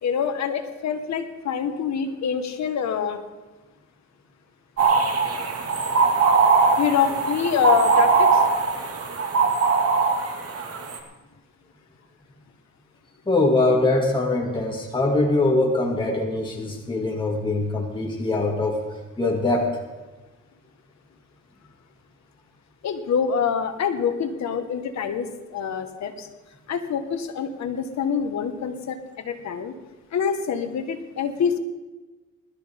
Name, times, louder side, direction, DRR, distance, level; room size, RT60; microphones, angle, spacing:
voice 1, 0.0-3.2 6.8-8.4 22.8-26.3 26.7-29.7 30.1-31.6, left 7 dB, 65° left, 7 dB, 1.7 m, -25 dB
sound 1, 4.8-11.0, right 4 dB, 50° right, 2.2 m, -21 dB
voice 2, 13.3-18.8 19.2-19.8, left 2 dB, 15° left, -2 dB, 2.4 m, -22 dB
20.5 x 13.0 x 3.7 m, 1.2 s
cardioid pair, 90°, 30 cm